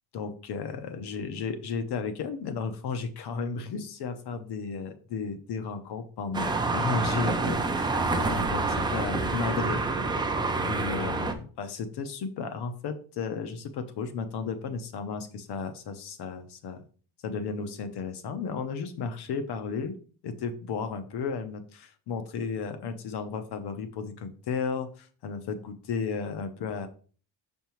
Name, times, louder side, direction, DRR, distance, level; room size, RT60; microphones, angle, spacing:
voice 1, 0.1-9.8 10.6-16.8 17.2-20.0 20.2-26.9, left 5 dB, 50° left, 9 dB, 0.8 m, -34 dB
sound 1, 6.3-11.3, right 3 dB, 10° right, 0.4 m, -27 dB
6.6 x 5.4 x 3.0 m, 0.40 s
cardioid pair, 150°, 49 cm